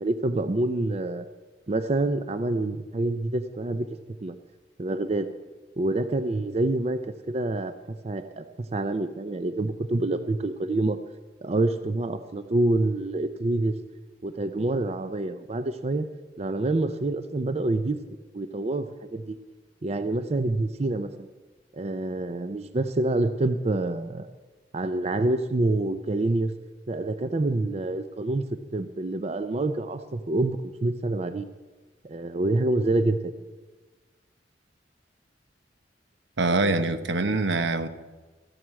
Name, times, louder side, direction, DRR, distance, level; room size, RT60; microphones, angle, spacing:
voice 1, 0.0-1.3 1.7-3.9 4.2-4.4 4.8-5.3 5.8-11.0 11.4-13.8 14.2-16.1 16.4-18.0 18.3-19.4 19.8-21.3 21.7-24.3 24.7-26.5 26.9-28.4 28.7-31.5 32.0-33.4, right 2 dB, 35° right, 10 dB, 0.5 m, -27 dB
voice 2, 36.4-37.9, right 2 dB, 75° right, 10 dB, 0.9 m, -24 dB
14.0 x 7.9 x 7.4 m, 1.3 s
head